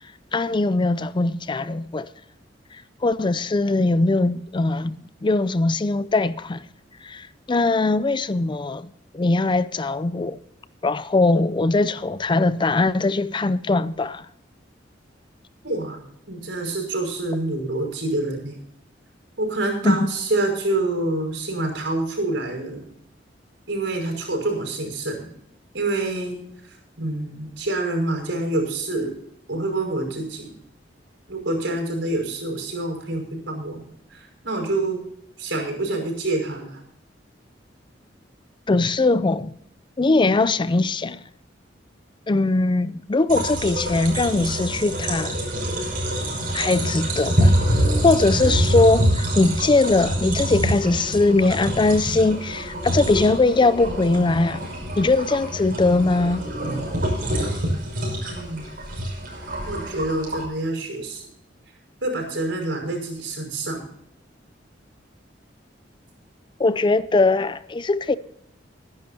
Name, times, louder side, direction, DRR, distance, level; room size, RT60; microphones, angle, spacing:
voice 1, 0.3-2.1 2.7-6.6 7.0-10.4 10.8-14.3 19.8-20.1 38.7-39.5 40.0-41.2 42.3-45.4 46.5-47.6 48.0-54.6 55.0-56.5 66.6-68.2, left 3 dB, 25° left, 0.4 m, -21 dB
voice 2, 15.6-16.0 16.3-18.6 19.4-22.8 23.7-25.3 25.7-26.4 27.0-29.1 29.5-30.5 31.3-33.8 34.1-35.0 35.4-36.8 58.3-58.6 59.7-61.2 62.0-63.8, right 2 dB, 80° right, 5.5 m, -27 dB
sound 1, 43.3-60.4, right 1 dB, 50° right, 5.9 m, -25 dB
22.5 x 10.5 x 2.8 m
head